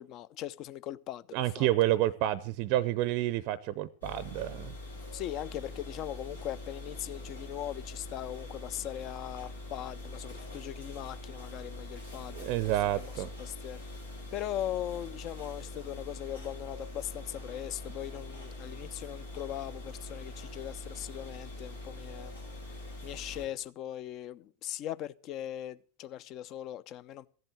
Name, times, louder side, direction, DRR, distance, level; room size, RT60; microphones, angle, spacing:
voice 1, 0.0-1.7 5.1-13.8 14.3-22.4 22.7-27.3, left 12 dB, 35° left, 0.6 m, -40 dB
voice 2, 1.3-4.7 12.3-13.3, right 14 dB, 45° right, 0.6 m, -29 dB
sound 1, 4.0-23.5, left 2 dB, 80° left, 4.8 m, -44 dB
14.5 x 8.0 x 7.7 m
figure-of-eight pair, 90°, 0 cm